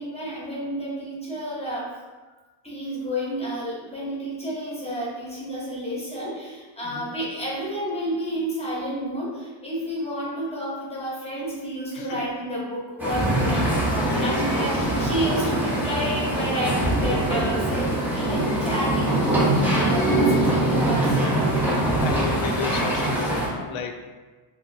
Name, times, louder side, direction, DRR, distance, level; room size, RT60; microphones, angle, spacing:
voice 1, 0.0-1.9 2.3-2.4 2.6-19.2 19.5-21.5, equal, 10° left, -7 dB, 1.0 m, -30 dB
voice 2, 11.9-12.3 14.0-14.8 21.8-24.0, left 6 dB, 70° left, 5 dB, 0.5 m, -33 dB
sound 1, 13.0-23.5, right 1 dB, 5° right, 0.6 m, -23 dB
4.1 x 2.1 x 2.6 m, 1.3 s
cardioid pair, 125°, 49 cm